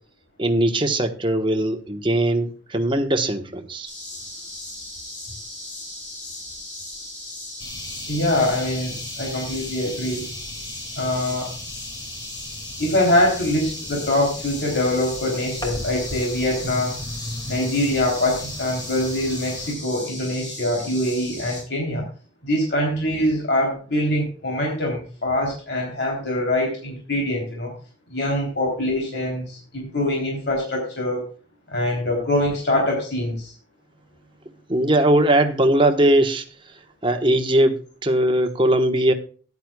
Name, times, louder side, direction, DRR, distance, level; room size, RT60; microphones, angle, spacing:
voice 1, 0.4-3.9 34.7-36.4 37.0-39.1, right 1 dB, 25° right, 6 dB, 1.2 m, -20 dB
sound 1, 3.9-21.6, left 1 dB, 40° left, 6.4 m, -37 dB
sound 2, 7.6-19.7, left 1 dB, 20° left, 2.2 m, -37 dB
voice 2, 8.1-10.3 11.0-11.5 12.8-17.0 17.5-22.1 22.4-27.7 28.1-31.3 31.7-33.5, left 1 dB, 60° left, -1 dB, 3.4 m, -24 dB
14.5 x 10.5 x 2.3 m, 0.39 s
head